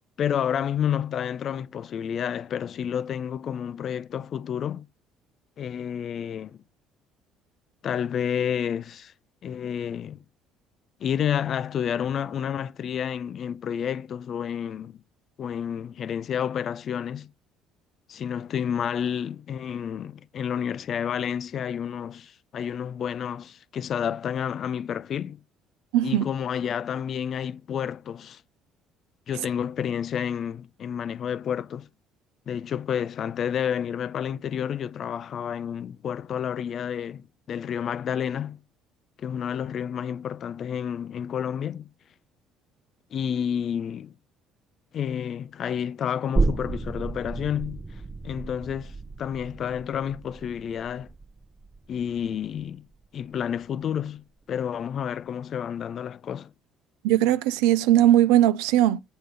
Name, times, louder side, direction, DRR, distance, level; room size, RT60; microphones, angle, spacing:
voice 1, 0.2-4.9 5.6-6.6 7.8-9.1 9.4-10.2 11.0-15.0 15.4-17.3 18.1-25.4 26.0-28.4 29.3-31.9 32.5-38.6 39.2-41.9 43.1-44.1 44.9-51.1 51.9-52.9 53.1-56.5, left 8 dB, 55° left, 0.5 m, -30 dB
voice 2, 25.9-26.3 57.0-59.0, right 13 dB, 75° right, 0.5 m, -19 dB
sound 1, 46.4-53.6 54.0-54.1, right 3 dB, 20° right, 0.7 m, -32 dB
8.0 x 3.8 x 6.7 m
hypercardioid pair, 60°, 0 cm